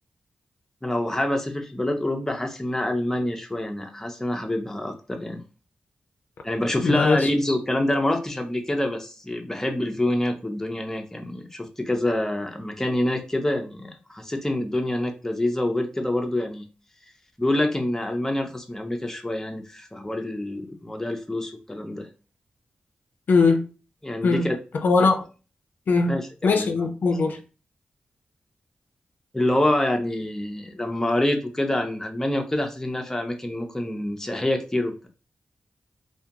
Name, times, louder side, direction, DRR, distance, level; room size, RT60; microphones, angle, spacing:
voice 1, 0.8-5.4 6.4-16.7 17.4-22.1 24.0-24.6 26.1-26.7 29.3-34.9, left 1 dB, 15° left, 0.5 m, -26 dB
voice 2, 6.8-7.3 23.3-23.6 24.2-24.5 24.7-25.2 25.9-26.1 26.4-27.4, left 4 dB, 75° left, 0.4 m, -20 dB
2.4 x 2.2 x 2.8 m
cardioid pair, 65°, 3 cm